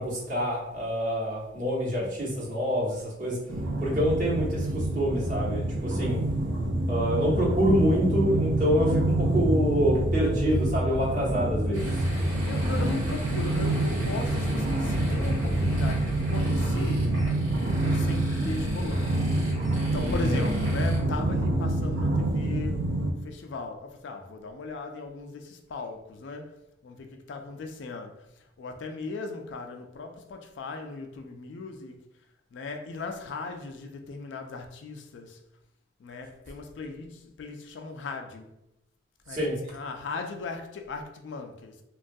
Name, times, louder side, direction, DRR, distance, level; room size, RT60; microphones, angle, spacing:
voice 1, 0.0-3.4 3.8-6.2 6.9-11.9 20.0-20.4 39.3-39.6, equal, 40° right, 0.9 m, -26 dB
sound 1, 3.5-23.1, right 1 dB, 70° right, 0.5 m, -27 dB
sound 2, 11.7-21.0, equal, 85° right, 1.2 m, -42 dB
voice 2, 12.2-17.1 17.8-19.3 19.7-26.6 26.8-32.0 32.5-35.4 36.0-38.5 39.3-41.8, left 3 dB, 70° left, 0.3 m, -38 dB
2.9 x 2.2 x 2.6 m
head